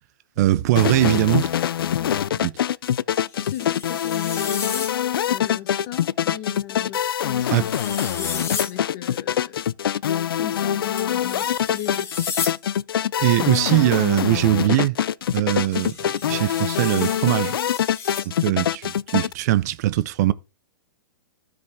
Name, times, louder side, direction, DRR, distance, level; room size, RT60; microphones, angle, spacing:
voice 1, 0.4-1.5 2.4-2.5 7.5-7.6 13.2-15.0 15.3-16.0 16.3-17.6 18.4-20.3, right 15 dB, 50° right, 0.5 m, -20 dB
sound 1, 0.7-19.3, left 10 dB, 80° left, 0.4 m, -24 dB
sound 2, 3.1-4.9 7.2-8.7 11.0-12.6 15.3-18.3, left 5 dB, 20° left, 2.0 m, -33 dB
voice 2, 3.4-4.9 5.3-7.7 8.0-9.7 10.4-12.1, left 11 dB, 45° left, 1.5 m, -36 dB
12.5 x 5.1 x 3.5 m
hypercardioid pair, 135°, 12 cm